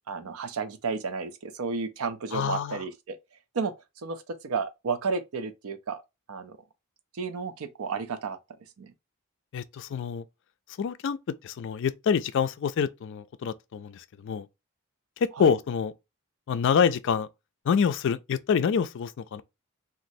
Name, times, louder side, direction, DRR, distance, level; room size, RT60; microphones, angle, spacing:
voice 1, 0.1-3.2 3.5-3.7 4.0-6.0 6.3-6.6 7.1-8.4 8.8-8.9 15.3-15.5, right 5 dB, 75° right, 0.5 m, -32 dB
voice 2, 2.3-2.8 9.5-10.2 10.8-14.5 15.2-15.9 16.5-17.3 17.7-19.4, left 7 dB, 55° left, 0.3 m, -26 dB
3.0 x 2.4 x 2.5 m
head